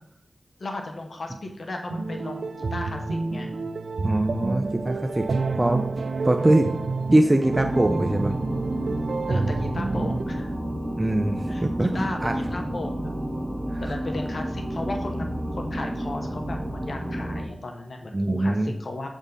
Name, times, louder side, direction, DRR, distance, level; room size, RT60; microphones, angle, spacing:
voice 1, 0.6-3.5 6.4-6.8 9.3-10.5 11.5-13.1 13.8-19.1, left 2 dB, 70° left, 4 dB, 0.9 m, -35 dB
sound 1, 1.9-10.2, right 3 dB, 80° right, 0.4 m, -29 dB
voice 2, 4.0-5.3 5.6-5.8 6.2-6.7 7.1-8.3 11.0-12.4 13.7-13.9 18.1-18.7, right 1 dB, 30° right, 5 dB, 0.5 m, -22 dB
sound 2, 7.4-17.4, equal, 5° right, 1.7 m, -31 dB
7.2 x 3.5 x 5.4 m, 0.75 s
cardioid pair, 45°, 0 cm